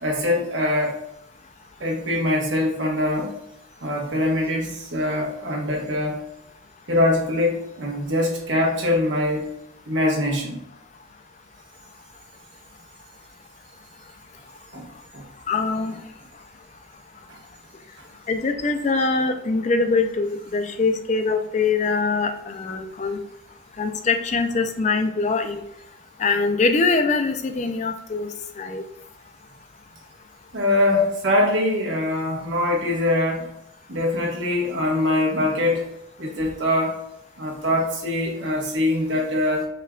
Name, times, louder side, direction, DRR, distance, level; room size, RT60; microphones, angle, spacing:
voice 1, 0.0-0.9 1.8-3.3 3.8-6.2 6.9-9.5 9.9-10.6 14.7-14.9 15.1-15.2 17.3-17.4 30.5-33.5 33.9-35.9 36.2-37.0 37.4-39.7, left 1 dB, 80° right, -1 dB, 1.2 m, -23 dB
voice 2, 15.5-16.0 18.3-23.2 23.8-25.6 26.2-28.3 28.6-28.8 30.9-31.1, left 4 dB, 40° left, 7 dB, 0.4 m, -23 dB
4.4 x 3.6 x 2.4 m, 0.80 s
head